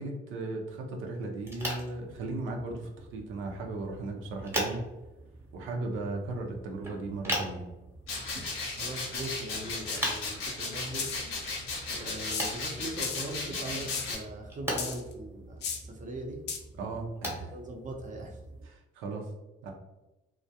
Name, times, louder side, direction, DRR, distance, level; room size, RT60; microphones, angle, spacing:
voice 1, 0.0-4.9 5.5-7.6 16.8-17.5 18.7-19.3 19.6-19.7, right 2 dB, 90° right, 1 dB, 0.6 m, -36 dB
sound 1, 1.4-18.7, equal, 10° right, 0.9 m, -40 dB
sound 2, 8.1-14.2, left 3 dB, 90° left, 0.8 m, -36 dB
voice 2, 8.8-11.1 11.9-16.4 17.5-18.4, right 1 dB, 40° right, 1 dB, 0.6 m, -40 dB
sound 3, 9.9-10.1 11.0-11.2 12.3-12.6 13.0-13.3 13.9-14.2 14.8-15.1 15.6-15.8 16.5-16.6, left 6 dB, 60° left, 0.5 m, -35 dB
2.3 x 2.1 x 2.7 m, 1.0 s
cardioid pair, 90°, 20 cm